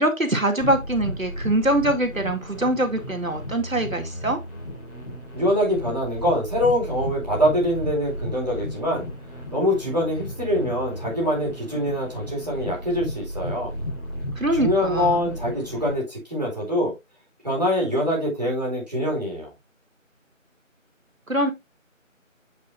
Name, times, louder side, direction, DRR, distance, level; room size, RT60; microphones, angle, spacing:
voice 1, 0.0-4.4 14.4-15.3 21.3-21.5, right 1 dB, 80° right, 2.6 m, -23 dB
sound 1, 0.6-15.9, left 1 dB, 20° left, 4.9 m, -34 dB
voice 2, 5.3-9.1 9.5-13.7 14.5-16.9 17.4-19.5, equal, 30° right, 4.1 m, -24 dB
8.7 x 6.6 x 2.6 m
figure-of-eight pair, 180°, 40 cm